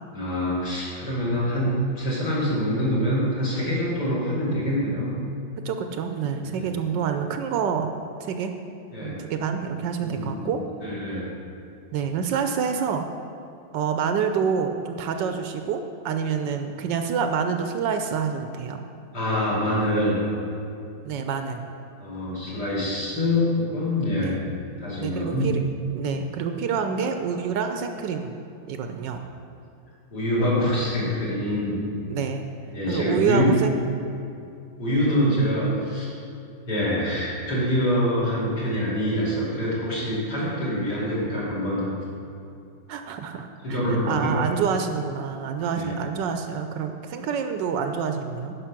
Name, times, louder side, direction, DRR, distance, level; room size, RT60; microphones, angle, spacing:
voice 1, 0.1-5.1 6.5-6.7 8.9-9.2 10.0-10.5 10.8-11.2 19.1-20.2 22.0-24.4 24.8-25.5 29.1-29.2 30.1-31.8 32.7-33.5 34.8-36.1 36.7-41.8 43.6-44.3 45.7-45.9, equal, 55° left, -8 dB, 3.2 m, -25 dB
voice 2, 5.6-7.9 8.2-8.5 9.0-10.6 11.9-13.0 13.7-18.8 21.0-21.6 24.2-24.4 25.0-25.6 25.9-28.3 28.7-29.2 32.1-32.5 32.9-33.8 42.9-43.8 44.0-48.6, right 6 dB, 75° right, 6 dB, 1.2 m, -27 dB
10.0 x 5.7 x 6.0 m, 2.6 s
omnidirectional pair, 2.1 m